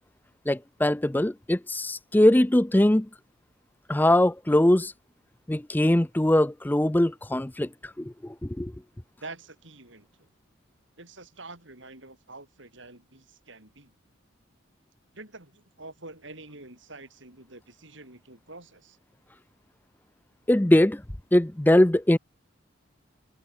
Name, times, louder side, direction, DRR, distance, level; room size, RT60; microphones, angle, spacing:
voice 1, 0.5-3.1 3.9-4.9 5.5-8.7 20.5-21.0 21.3-22.2, left 1 dB, 10° left, 0.5 m, -21 dB
voice 2, 9.2-10.3 11.0-13.9 15.1-19.0, right 2 dB, 65° right, 6.4 m, -46 dB
head